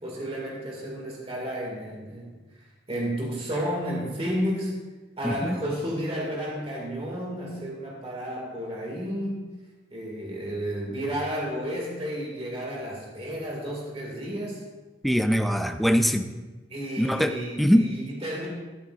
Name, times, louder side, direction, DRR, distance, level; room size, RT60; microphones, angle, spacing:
voice 1, 0.0-4.7 5.2-9.4 9.9-14.6 16.7-18.5, equal, 35° right, -2 dB, 2.1 m, -32 dB
voice 2, 5.2-5.6 15.0-16.3 17.0-17.3 17.6-17.9, equal, ahead, 7 dB, 0.5 m, -22 dB
13.0 x 12.0 x 2.5 m, 1.3 s
head